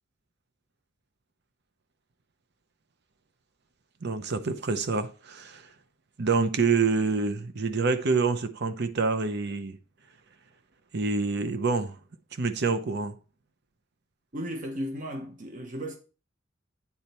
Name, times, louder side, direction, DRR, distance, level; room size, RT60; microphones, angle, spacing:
voice 1, 4.0-5.7 6.2-9.8 10.9-12.0 12.3-13.2, right 4 dB, 60° right, 0.8 m, -27 dB
voice 2, 14.3-16.0, equal, 40° right, 1.0 m, -35 dB
8.6 x 4.2 x 4.4 m
head